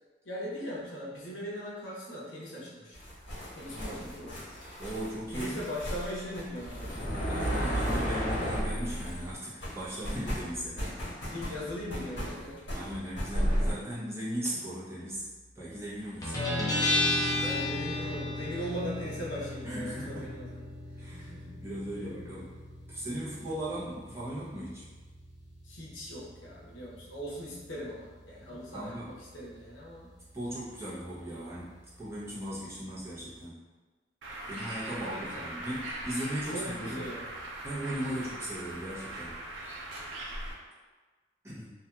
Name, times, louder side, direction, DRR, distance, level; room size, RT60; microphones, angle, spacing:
voice 1, 0.2-3.0 3.5-4.6 5.3-7.2 11.1-12.6 16.2-16.9 17.4-20.5 21.2-21.6 21.9-22.1 25.6-30.1 34.9-35.4 36.4-37.3, equal, 85° left, -5 dB, 0.7 m, -39 dB
sound 1, 2.9-9.3 9.6-13.7, equal, 70° left, 1.3 m, -34 dB
voice 2, 3.6-4.1 4.8-5.6 7.4-10.8 12.7-15.3 15.5-16.4 17.2-17.5 19.6-20.3 21.0-22.5 22.9-24.9 28.4-29.1 30.3-33.6 34.5-37.1 37.6-39.4 41.4-41.7, equal, 15° right, -10 dB, 0.7 m, -38 dB
Guitar, 16.2-33.4, left 2 dB, 20° left, 0.5 m, -37 dB
Bird, 34.2-40.5, right 1 dB, 90° right, 0.5 m, -40 dB
2.8 x 2.4 x 2.3 m, 1.3 s
head